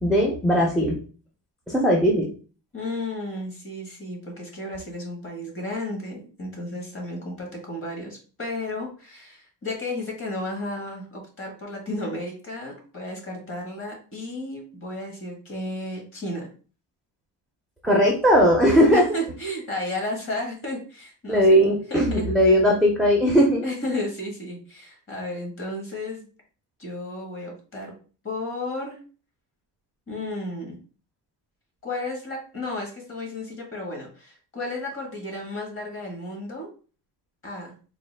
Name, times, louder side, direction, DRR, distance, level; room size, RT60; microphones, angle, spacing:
voice 1, 0.0-1.0 1.7-2.3 17.8-19.1 21.3-23.6, equal, ahead, -1 dB, 0.4 m, -18 dB
voice 2, 2.7-16.5 18.9-21.6 21.9-22.3 23.6-26.3 26.8-27.9 28.2-29.0 30.1-30.8 31.8-36.7 37.4-37.7, left 1 dB, 30° left, 1 dB, 1.0 m, -33 dB
3.8 x 2.2 x 3.1 m, 0.38 s
cardioid pair, 165°, 43 cm